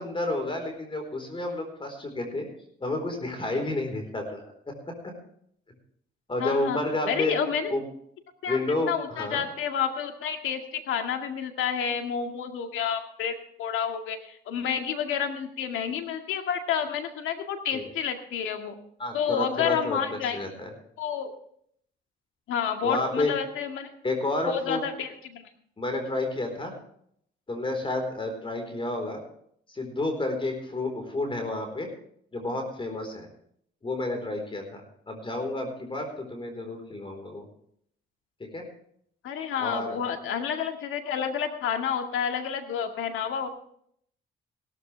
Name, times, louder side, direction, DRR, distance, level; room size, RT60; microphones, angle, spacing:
voice 1, 0.0-2.5 2.8-4.5 6.3-7.3 7.7-7.8 8.5-9.4 17.7-17.8 19.0-20.0 20.3-20.7 22.8-23.3 24.0-24.8 25.8-26.7 27.5-29.2 29.7-31.9 32.3-33.3 33.8-37.4 38.4-38.6 39.6-40.0, left 2 dB, 25° left, 4 dB, 4.3 m, -30 dB
voice 2, 6.4-6.8 7.1-7.7 8.4-8.6 8.9-18.7 19.1-20.4 21.0-21.3 22.5-23.9 24.5-25.5 39.2-43.5, left 7 dB, 85° left, 5 dB, 2.1 m, -29 dB
17.0 x 13.5 x 3.4 m, 0.66 s
cardioid pair, 90°, 20 cm